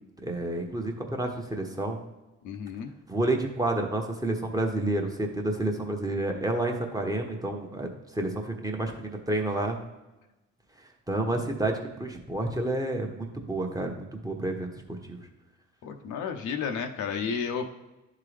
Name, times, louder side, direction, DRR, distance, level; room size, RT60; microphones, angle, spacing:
voice 1, 0.2-2.0 3.1-9.8 11.1-15.2, right 2 dB, 10° right, 2 dB, 1.0 m, -30 dB
voice 2, 2.4-2.9 15.8-17.7, left 6 dB, 80° left, 5 dB, 0.7 m, -32 dB
10.5 x 3.8 x 3.3 m, 1.0 s
cardioid pair, 90°, 30 cm